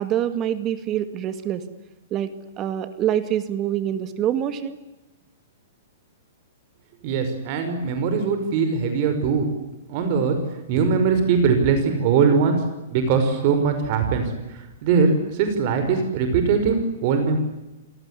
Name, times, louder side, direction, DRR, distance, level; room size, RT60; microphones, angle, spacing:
voice 1, 0.0-1.7 2.1-2.3 2.6-4.8, right 10 dB, 25° right, 11 dB, 2.1 m, -25 dB
voice 2, 7.0-9.5 9.9-10.4 10.7-12.6 12.9-17.4, right 5 dB, 40° right, 7 dB, 5.6 m, -21 dB
29.5 x 19.0 x 9.8 m, 1.0 s
hypercardioid pair, 155°, 0 cm